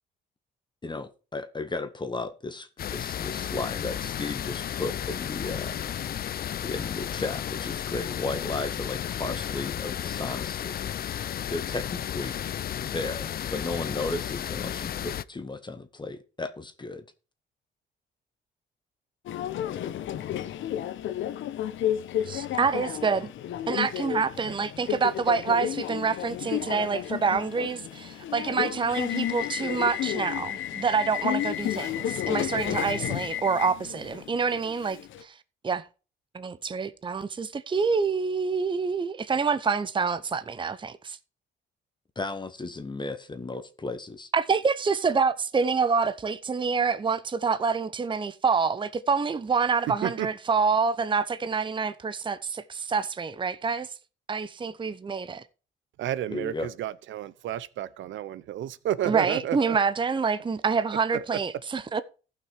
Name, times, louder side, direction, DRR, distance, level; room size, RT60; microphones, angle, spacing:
voice 1, 0.8-5.8 6.6-10.7 11.5-12.4 12.8-17.0 42.1-44.3 56.3-56.7, left 3 dB, 25° left, 1.2 m, -34 dB
sound 1, 2.8-15.2, left 10 dB, 50° left, 0.5 m, -33 dB
Subway metro underground, 19.3-35.2, left 11 dB, 75° left, 1.0 m, -32 dB
voice 2, 22.3-23.3 23.7-35.3 35.6-35.8 36.3-41.2 44.3-53.9 54.3-55.4 59.1-62.0, right 5 dB, 25° right, 0.7 m, -27 dB
voice 3, 49.9-50.3 56.0-59.8 61.1-61.2, right 12 dB, 75° right, 0.8 m, -31 dB
14.5 x 5.9 x 4.6 m
cardioid pair, 90°, 20 cm